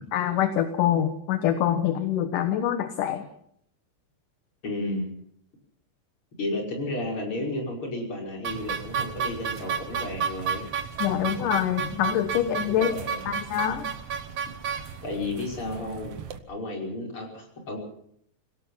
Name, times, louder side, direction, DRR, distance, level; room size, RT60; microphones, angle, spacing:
voice 1, 0.1-3.3 11.0-12.9 13.3-13.9, left 10 dB, 65° left, 9 dB, 2.5 m, -25 dB
voice 2, 4.6-5.2 6.4-10.7 12.8-13.3 15.0-16.1 16.5-17.8, left 2 dB, 30° left, 1 dB, 6.1 m, -32 dB
sound 1, 8.4-16.4, right 7 dB, 65° right, 1.5 m, -32 dB
26.5 x 17.5 x 5.7 m, 0.67 s
omnidirectional pair, 4.7 m